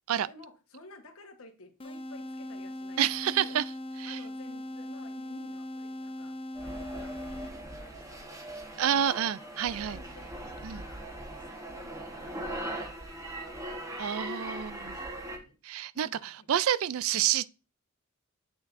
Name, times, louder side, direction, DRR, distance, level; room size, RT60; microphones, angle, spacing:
voice 1, 0.2-3.6 4.0-10.3 10.7-11.1 11.4-13.7 14.4-15.6 15.9-16.5, left 2 dB, 70° left, 1.3 m, -54 dB
sound 1, 1.8-7.8, left 1 dB, 25° left, 0.6 m, -40 dB
voice 2, 3.0-3.6 4.0-4.2 8.8-10.0 10.6-10.8 14.0-14.9 15.6-17.5, right 10 dB, 70° right, 0.4 m, -28 dB
sound 2, 6.5-15.4, right 1 dB, 15° right, 1.2 m, -40 dB
8.1 x 6.6 x 2.6 m
head